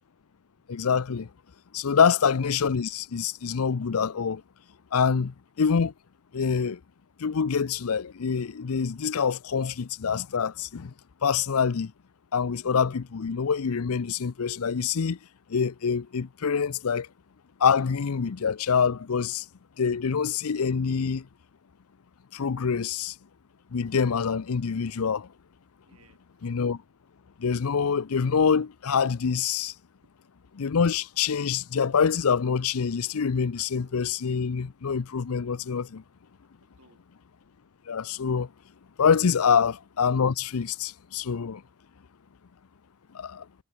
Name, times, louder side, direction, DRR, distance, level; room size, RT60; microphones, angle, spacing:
voice 1, 0.7-1.3 1.7-4.4 4.9-5.9 6.3-6.8 7.2-10.9 11.2-11.9 12.3-15.2 15.5-17.1 17.6-19.4 19.8-21.2 22.3-23.1 23.7-25.3 26.4-26.8 27.4-29.7 30.5-36.0 37.9-38.5 39.0-41.6 43.1-43.4, left 6 dB, 70° left, 0.6 m, -25 dB
voice 2, 25.8-26.5 33.6-34.0 36.6-37.0 39.4-39.5, right 2 dB, 80° right, 7.1 m, -61 dB
head